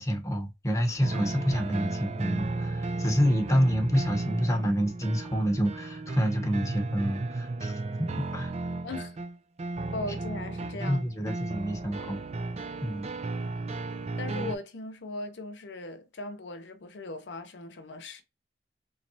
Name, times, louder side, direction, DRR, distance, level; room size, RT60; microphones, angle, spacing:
voice 1, 0.0-8.5 10.7-12.2 12.8-13.1, equal, 15° left, 0.9 m, -28 dB
sound 1, 1.0-14.6, right 2 dB, 35° right, 0.4 m, -34 dB
voice 2, 8.8-9.2 9.9-11.0 14.2-18.2, left 2 dB, 85° left, 0.7 m, -38 dB
3.9 x 3.2 x 2.7 m
head